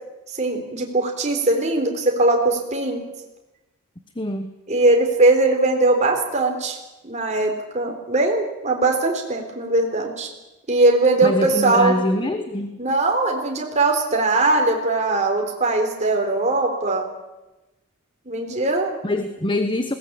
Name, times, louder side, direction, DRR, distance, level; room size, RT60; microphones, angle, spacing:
voice 1, 0.4-3.0 4.7-6.8 7.0-10.3 10.7-12.0 12.8-17.1 18.3-18.9, right 2 dB, 30° right, 2 dB, 4.1 m, -20 dB
voice 2, 4.1-4.5 11.2-12.8 19.0-19.9, left 1 dB, 20° left, 8 dB, 1.2 m, -24 dB
21.5 x 19.0 x 8.8 m, 1.0 s
head